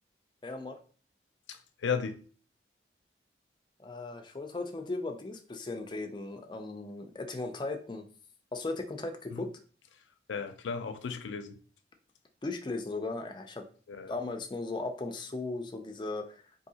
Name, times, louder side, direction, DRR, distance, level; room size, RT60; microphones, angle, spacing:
voice 1, 0.4-0.8 3.8-8.0 8.5-9.5 12.4-13.6 14.1-16.4, left 3 dB, 25° left, 0.4 m, -37 dB
voice 2, 1.5-2.2 9.3-9.4 10.3-11.6 13.9-14.1, left 6 dB, 90° left, 0.4 m, -35 dB
3.7 x 2.7 x 2.7 m
head